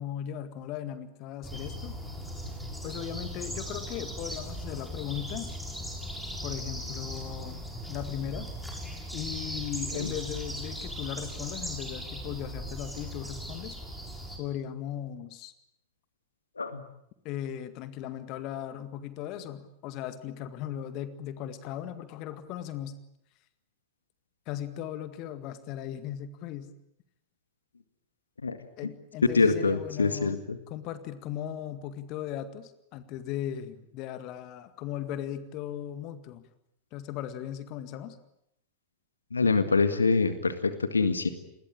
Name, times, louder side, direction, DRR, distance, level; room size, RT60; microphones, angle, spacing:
voice 1, 0.0-2.0 2.8-5.5 6.4-7.6 7.9-8.5 9.1-13.8 14.4-15.5 17.2-23.0 24.5-26.7 28.8-36.4 36.9-38.2, left 10 dB, 40° left, 12 dB, 1.9 m, -37 dB
sound 1, 1.4-14.4, equal, ahead, 6.9 m, -38 dB
voice 2, 29.3-30.6 39.3-41.3, left 4 dB, 75° left, 11 dB, 1.9 m, -25 dB
29.0 x 21.0 x 8.8 m, 0.79 s
figure-of-eight pair, 90°, 0 cm